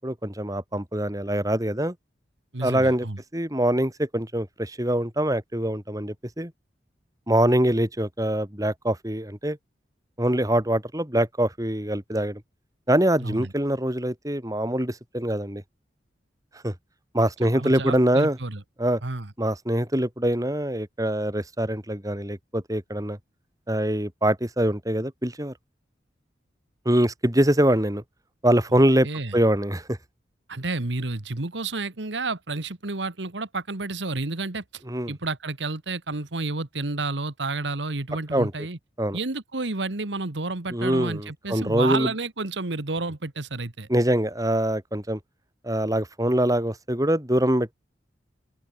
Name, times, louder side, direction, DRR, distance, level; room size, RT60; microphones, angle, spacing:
voice 1, 0.0-1.9 2.6-3.1 3.3-6.5 7.3-9.6 10.2-12.4 12.9-15.6 16.6-16.7 17.1-18.4 18.8-19.0 19.4-23.2 23.7-25.5 26.8-28.0 28.4-29.1 29.3-30.0 34.9-35.1 38.3-38.5 39.0-39.2 40.7-42.1 43.9-45.2 45.6-47.7, right 1 dB, 20° right, 3.2 m, -24 dB
voice 2, 2.5-3.2 13.2-13.5 17.5-18.6 19.0-19.3 28.7-29.3 30.5-38.8 39.1-43.9, right 3 dB, 80° right, 1.7 m, -31 dB
open air
head